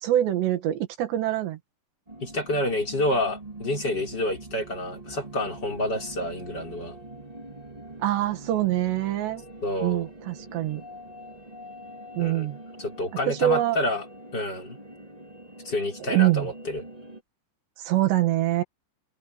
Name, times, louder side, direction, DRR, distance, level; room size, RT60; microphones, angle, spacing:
voice 1, 0.0-1.6 8.0-9.4 9.8-10.8 12.2-12.6 13.3-13.8 16.0-16.5 17.8-18.6, right 14 dB, 75° right, 4.0 m, -24 dB
sound 1, 2.1-17.2, right 1 dB, 55° right, 0.4 m, -44 dB
voice 2, 2.2-7.0 9.6-10.1 12.2-12.5 12.8-14.1 14.3-14.8 15.7-16.8, left 1 dB, 25° left, 5.3 m, -28 dB
omnidirectional pair, 5.1 m